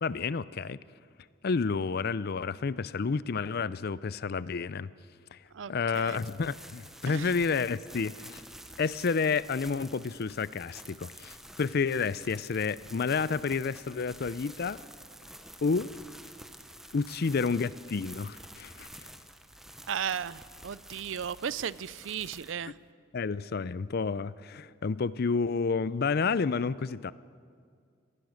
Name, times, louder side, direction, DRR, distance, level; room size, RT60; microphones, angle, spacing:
voice 1, 0.0-0.8 1.4-4.9 5.3-5.4 5.7-8.4 8.8-14.8 15.6-15.9 16.9-18.9 23.1-27.1, left 5 dB, 50° left, 18 dB, 0.5 m, -30 dB
voice 2, 5.5-6.2 7.1-7.3 19.9-22.7, right 8 dB, 70° right, 19 dB, 0.5 m, -35 dB
sound 1, 5.9-22.5, right 1 dB, ahead, 0.9 m, -49 dB
25.5 x 19.0 x 6.4 m, 2.2 s
head